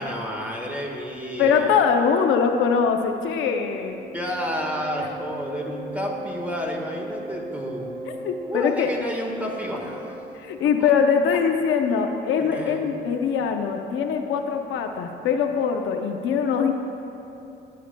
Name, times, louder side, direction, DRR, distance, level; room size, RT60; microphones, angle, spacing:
voice 1, 0.0-1.8 4.1-7.9 8.4-10.2 10.8-10.9 12.4-13.0, equal, 10° right, 0 dB, 1.5 m, -31 dB
voice 2, 1.4-4.0 8.1-8.9 10.4-16.7, left 6 dB, 85° left, 5 dB, 0.6 m, -22 dB
Wind instrument woodwind instrument, 3.6-10.6, right 2 dB, 80° right, 0.6 m, -38 dB
17.0 x 6.5 x 2.2 m, 2.8 s
cardioid pair, 90°, 20 cm